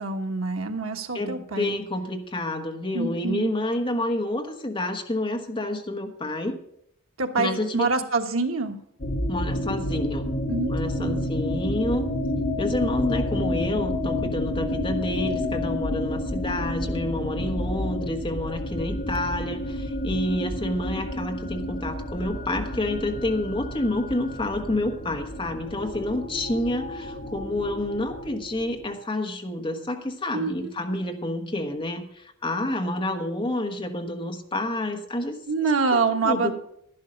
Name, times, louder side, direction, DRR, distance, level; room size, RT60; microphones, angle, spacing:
voice 1, 0.0-1.8 2.9-3.5 7.2-8.8 10.5-10.7 11.0-11.3 30.3-30.8 35.5-36.5, right 4 dB, 90° right, 4 dB, 1.3 m, -26 dB
voice 2, 1.1-6.6 7.4-7.9 9.3-10.2 10.7-12.0 12.6-35.4 35.9-36.5, left 1 dB, 25° left, 4 dB, 1.3 m, -29 dB
sound 1, 9.0-28.8, left 1 dB, 45° left, 1.7 m, -30 dB
11.5 x 11.5 x 5.1 m, 0.72 s
head